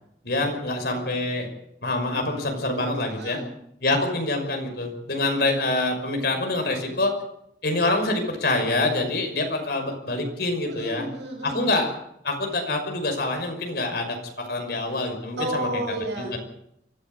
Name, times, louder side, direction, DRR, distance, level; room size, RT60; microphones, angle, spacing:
voice 1, 0.2-1.5 1.8-3.4 3.8-7.1 7.6-11.1 11.4-11.9 12.2-15.7 16.2-16.4, left 2 dB, 60° left, 3 dB, 5.7 m, -26 dB
voice 2, 3.1-3.5 10.7-11.7 15.4-16.3, right 1 dB, 80° right, 0 dB, 7.5 m, -31 dB
23.5 x 15.0 x 8.0 m, 0.78 s
head